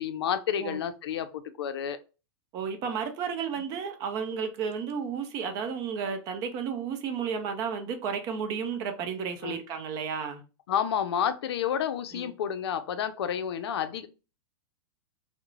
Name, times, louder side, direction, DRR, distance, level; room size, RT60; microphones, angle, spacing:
voice 1, 0.0-2.0 9.4-9.6 10.7-14.1, left 8 dB, 85° left, 0.4 m, -30 dB
voice 2, 2.5-10.4 12.1-12.3, right 6 dB, 30° right, 0.4 m, -32 dB
2.4 x 2.0 x 3.0 m
supercardioid pair, 155°, 13 cm